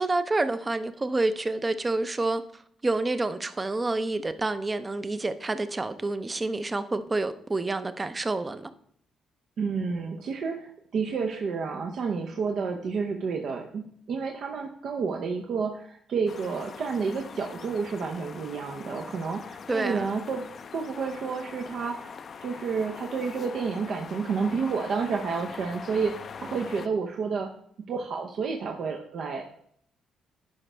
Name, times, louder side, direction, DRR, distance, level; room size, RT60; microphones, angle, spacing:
voice 1, 0.0-8.7 19.7-20.1, right 2 dB, 25° right, 0.6 m, -28 dB
voice 2, 9.6-20.4 20.7-22.1 22.4-27.5 27.9-29.6, right 5 dB, 65° right, 0.7 m, -30 dB
sound 1, 16.3-26.9, left 6 dB, 50° left, 0.4 m, -43 dB
10.5 x 5.0 x 3.3 m
cardioid pair, 90°, 0 cm